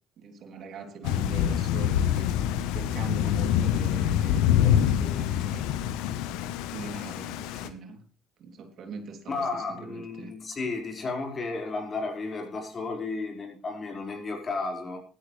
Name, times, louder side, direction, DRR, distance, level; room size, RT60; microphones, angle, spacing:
voice 1, 0.2-2.3 2.7-5.6 6.7-8.0 8.4-10.3, right 4 dB, 60° right, 4 dB, 3.1 m, -42 dB
Thunder / Rain, 1.0-7.7, left 10 dB, 75° left, 1.1 m, -26 dB
voice 2, 9.3-15.0, left 3 dB, 40° left, 2 dB, 4.9 m, -33 dB
16.5 x 12.5 x 3.4 m, 0.36 s
hypercardioid pair, 60°, 0 cm